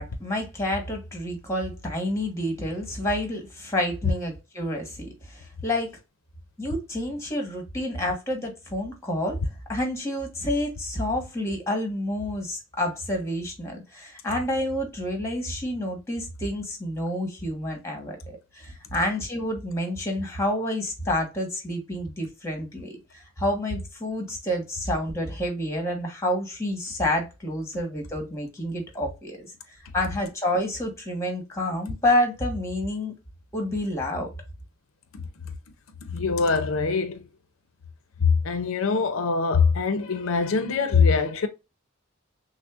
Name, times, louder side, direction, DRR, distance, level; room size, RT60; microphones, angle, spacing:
voice 1, 0.0-5.9 6.6-9.4 9.7-29.5 29.9-33.1 33.5-34.3, left 1 dB, 15° left, 1.2 m, -29 dB
voice 2, 36.1-37.3 38.2-41.5, left 5 dB, 80° left, 0.5 m, -23 dB
6.1 x 2.1 x 2.4 m
head